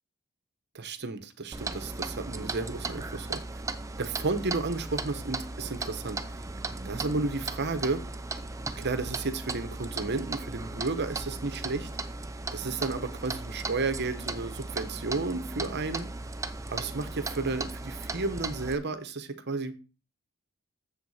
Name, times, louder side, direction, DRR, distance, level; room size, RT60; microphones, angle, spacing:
voice 1, 0.7-3.4 4.0-6.4 6.8-8.0 8.8-11.9 12.5-16.1 16.7-19.7, right 3 dB, 55° right, 1.0 m, -32 dB
Clock, 1.5-18.8, right 3 dB, 15° right, 0.6 m, -37 dB
7.5 x 6.9 x 4.9 m
head